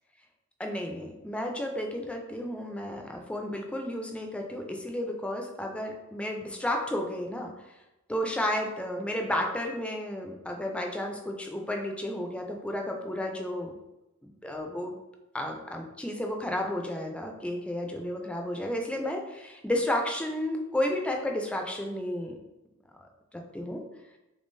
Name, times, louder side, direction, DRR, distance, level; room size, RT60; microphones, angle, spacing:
voice 1, 0.6-7.5 8.1-13.7 14.2-14.9 15.3-22.4 23.5-23.8, left 1 dB, 5° left, 2 dB, 0.4 m, -32 dB
3.6 x 3.2 x 2.6 m, 0.98 s
head